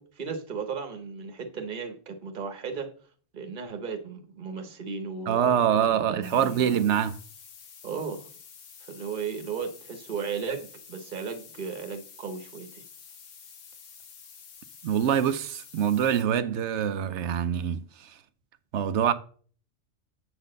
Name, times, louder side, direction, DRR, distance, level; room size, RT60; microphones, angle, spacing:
voice 1, 0.0-2.9 3.3-6.9 7.8-8.3 8.9-12.8, right 5 dB, 45° right, 1.2 m, -35 dB
voice 2, 5.3-7.2 14.8-17.8 18.7-19.1, right 9 dB, 70° right, 0.9 m, -24 dB
sound 1, 6.2-16.2, left 6 dB, 80° left, 1.4 m, -49 dB
7.9 x 4.1 x 6.5 m
omnidirectional pair, 1.3 m